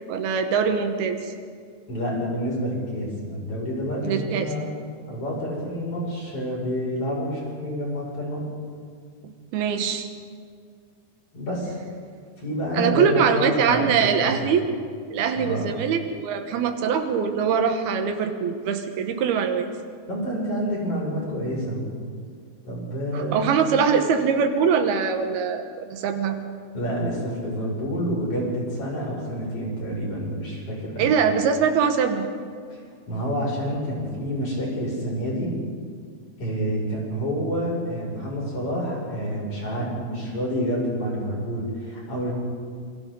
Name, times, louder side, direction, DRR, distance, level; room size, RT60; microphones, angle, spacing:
voice 1, 0.1-1.2 4.0-4.5 9.2-10.1 12.7-14.6 15.1-19.7 23.1-26.4 31.0-32.3, right 6 dB, 85° right, 6 dB, 3.2 m, -23 dB
voice 2, 1.9-4.6 5.1-8.4 11.3-11.7 12.4-14.5 15.3-15.7 20.1-21.8 22.7-23.5 26.7-31.1 32.7-32.8 33.1-35.5 36.4-42.3, equal, 35° left, -4 dB, 7.0 m, -28 dB
27.0 x 24.5 x 3.9 m, 2.1 s
omnidirectional pair, 4.3 m